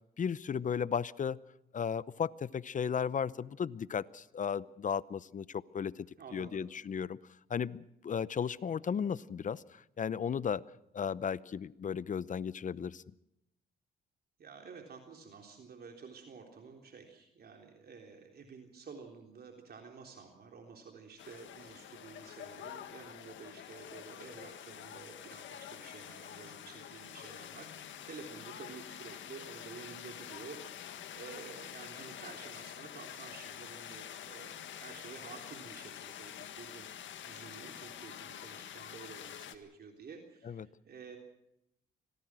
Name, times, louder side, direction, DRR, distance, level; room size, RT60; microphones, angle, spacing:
voice 1, 0.2-1.4 1.7-6.1 6.3-7.2 7.5-10.7 10.9-13.0 40.4-40.7, left 7 dB, 40° left, 18 dB, 0.8 m, -35 dB
voice 2, 6.2-6.6 14.4-30.6 30.9-41.2, right 5 dB, 50° right, 2 dB, 3.6 m, -51 dB
sound 1, 21.2-39.6, left 10 dB, 70° left, 1.8 m, -47 dB
25.5 x 18.5 x 6.2 m, 0.83 s
cardioid pair, 90°, 20 cm